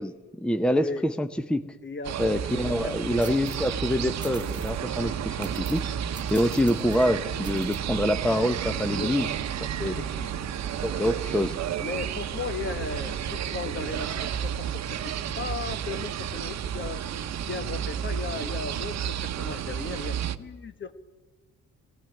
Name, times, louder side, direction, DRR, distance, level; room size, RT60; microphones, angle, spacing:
voice 1, 0.0-1.6 2.2-5.8 6.3-9.3 9.8-10.0 10.8-11.6, equal, 5° left, 10 dB, 0.8 m, -26 dB
voice 2, 0.7-1.0 1.8-2.2 2.6-3.1 6.4-6.6 8.9-9.2 9.8-10.6 11.0-11.1 11.8-17.0 17.5-20.9, left 4 dB, 40° left, 11 dB, 1.3 m, -37 dB
sound 1, 2.0-20.4, right 9 dB, 60° right, 1.0 m, -31 dB
sound 2, 3.2-3.7 4.2-4.8 5.4-5.9 6.1-7.1 7.4-7.8, right 3 dB, 15° right, 1.1 m, -45 dB
19.0 x 17.0 x 9.0 m, 1.3 s
cardioid pair, 90°, 30 cm